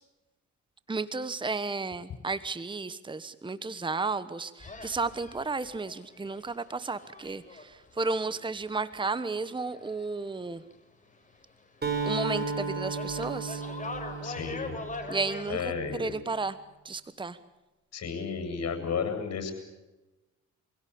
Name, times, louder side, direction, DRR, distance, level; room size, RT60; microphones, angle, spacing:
voice 1, 0.9-10.6 12.0-13.6 15.1-16.6 16.8-17.4, right 3 dB, 15° right, 14 dB, 1.2 m, -33 dB
sound 1, 4.6-10.4 10.6-11.9 12.2-15.5, left 3 dB, 25° left, 5.0 m, -43 dB
Acoustic guitar, 11.8-15.7, right 4 dB, 35° right, 5.7 m, -34 dB
voice 2, 14.2-14.8 15.5-16.2 17.9-19.5, left 6 dB, 55° left, 6 dB, 7.8 m, -33 dB
27.0 x 17.0 x 8.6 m, 1.1 s
cardioid pair, 90°, 30 cm